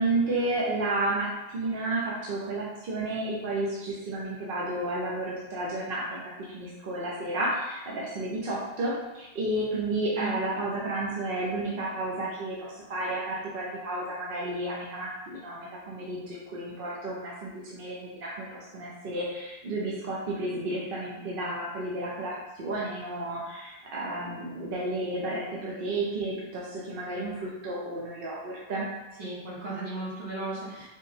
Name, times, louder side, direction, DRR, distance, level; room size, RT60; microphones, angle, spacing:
voice 1, 0.0-6.2 6.5-28.9, right 2 dB, 65° right, -5 dB, 0.9 m, -32 dB
voice 2, 29.2-30.9, right 2 dB, 80° right, -6 dB, 1.3 m, -35 dB
3.6 x 2.2 x 4.0 m, 1.0 s
omnidirectional pair, 1.0 m